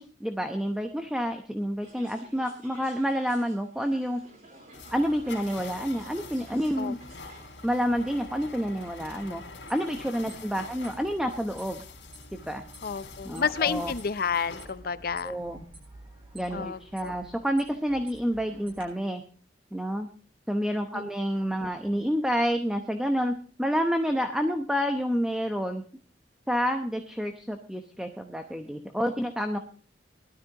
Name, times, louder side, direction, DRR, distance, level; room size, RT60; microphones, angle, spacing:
voice 1, 0.0-4.2 4.9-7.0 7.6-9.4 9.7-11.8 12.3-12.7 13.2-13.9 15.2-15.6 16.3-19.2 19.7-20.1 20.5-25.8 26.5-29.6, equal, 5° right, 5 dB, 0.8 m, -29 dB
sound 1, 1.8-9.5, right 2 dB, 45° right, 4.1 m, -53 dB
sound 2, 4.7-14.7, left 3 dB, 75° left, 3.3 m, -45 dB
sound 3, 8.8-18.8, right 1 dB, 30° right, 6.9 m, -51 dB
voice 2, 12.8-15.3 16.5-17.1 20.9-21.1, left 6 dB, 55° left, 14 dB, 0.6 m, -30 dB
19.5 x 12.5 x 3.0 m, 0.39 s
head